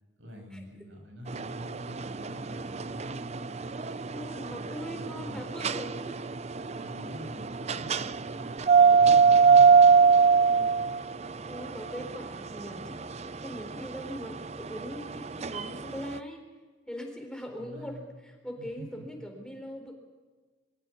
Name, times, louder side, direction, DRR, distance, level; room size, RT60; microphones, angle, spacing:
voice 1, 0.2-3.6 4.4-5.4 6.8-9.7 10.6-11.1 17.6-18.2 18.5-19.3, equal, 80° right, 2 dB, 6.6 m, -46 dB
sound 1, 1.3-16.2, right 5 dB, 35° right, 0.6 m, -25 dB
voice 2, 4.1-6.2 8.8-9.0 10.5-10.8 11.4-16.4 16.9-19.9, equal, 5° left, 2 dB, 4.0 m, -41 dB
24.5 x 15.0 x 9.7 m, 1.3 s
head